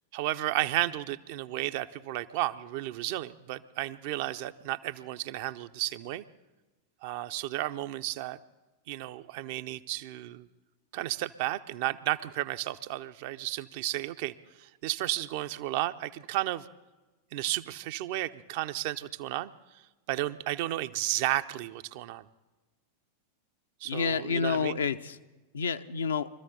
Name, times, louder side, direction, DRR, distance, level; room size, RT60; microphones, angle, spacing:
voice 1, 0.1-6.2 7.0-8.4 8.9-10.5 10.9-16.7 17.3-19.5 20.1-22.3 23.8-24.8, right 15 dB, 50° right, 11 dB, 0.6 m, -33 dB
voice 2, 23.8-25.2 25.5-26.3, left 6 dB, 70° left, 9 dB, 0.6 m, -29 dB
23.5 x 14.0 x 3.9 m, 1.1 s
figure-of-eight pair, 90°, 0 cm